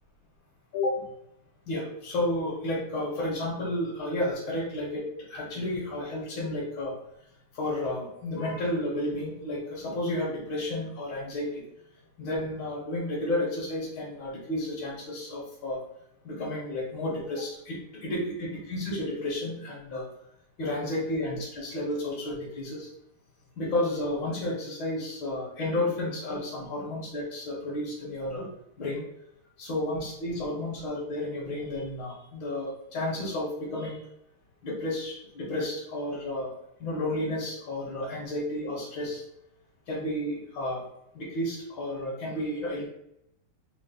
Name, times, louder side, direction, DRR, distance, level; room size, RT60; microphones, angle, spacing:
voice 1, 0.7-1.1 1.7-6.9 7.5-11.6 12.2-15.8 16.2-20.1 20.6-22.9 23.6-28.5 28.8-29.0 29.6-34.0 34.6-36.5 36.8-39.2 39.9-40.8 41.1-42.9, left 1 dB, 65° left, -5 dB, 1.8 m, -32 dB
4.7 x 2.0 x 3.9 m, 0.79 s
omnidirectional pair, 2.4 m